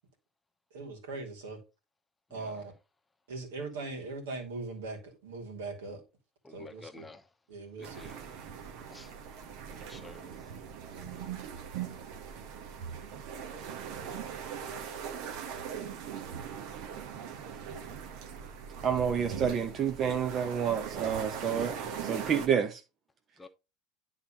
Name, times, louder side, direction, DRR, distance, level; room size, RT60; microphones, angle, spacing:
voice 1, 0.7-1.6 2.3-2.7 3.3-6.0 6.5-7.1 7.5-8.0, right 3 dB, 75° right, 2.7 m, -40 dB
voice 2, 6.4-7.2 8.0-8.2 8.9-9.1 9.8-10.3 23.4-23.5, left 3 dB, 15° left, 1.1 m, -50 dB
sound 1, 7.8-22.5, right 7 dB, 60° right, 1.3 m, -40 dB
voice 3, 18.8-21.8 22.0-22.8, right 7 dB, 40° right, 1.0 m, -29 dB
9.9 x 4.1 x 4.3 m
hypercardioid pair, 80°, 0 cm